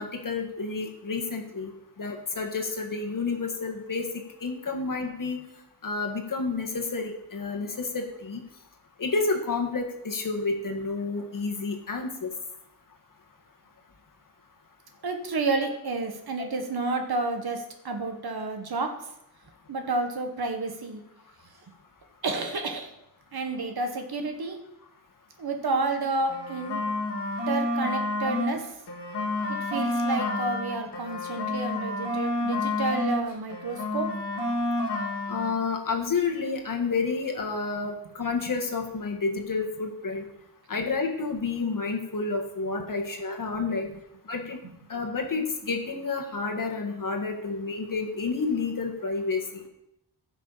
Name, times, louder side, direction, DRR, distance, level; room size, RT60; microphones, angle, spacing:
voice 1, 0.0-1.7 2.0-4.1 4.4-5.4 5.8-8.4 9.0-12.3 35.3-40.2 40.7-43.9 44.3-44.6 44.9-49.6, left 4 dB, 50° left, 3 dB, 1.7 m, -30 dB
voice 2, 15.0-18.9 19.7-21.0 22.2-22.9 23.3-24.6 25.4-26.8 27.5-28.6 29.5-34.1, right 3 dB, 65° right, 4 dB, 1.5 m, -30 dB
sound 1, 26.2-28.6 28.9-33.2 33.5-35.5, left 2 dB, 85° left, 2.0 m, -29 dB
15.5 x 6.0 x 4.1 m, 0.81 s
wide cardioid pair, 130°, 40 cm